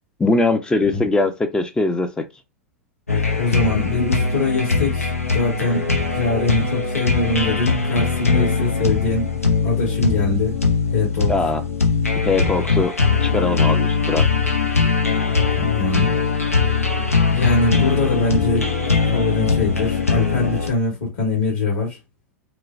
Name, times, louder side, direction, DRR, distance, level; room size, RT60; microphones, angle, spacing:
voice 1, 0.2-2.2 11.3-11.6 12.2-12.9 13.2-14.3, left 2 dB, 10° left, 0.4 m, -21 dB
sound 1, 3.1-20.7, left 4 dB, 90° left, 0.6 m, -20 dB
voice 2, 3.4-9.3 9.6-10.6 10.9-11.3 15.6-16.2 17.3-18.8 19.1-22.0, left 3 dB, 55° left, 1.6 m, -23 dB
3.0 x 2.1 x 2.6 m
figure-of-eight pair, 90°, 7 cm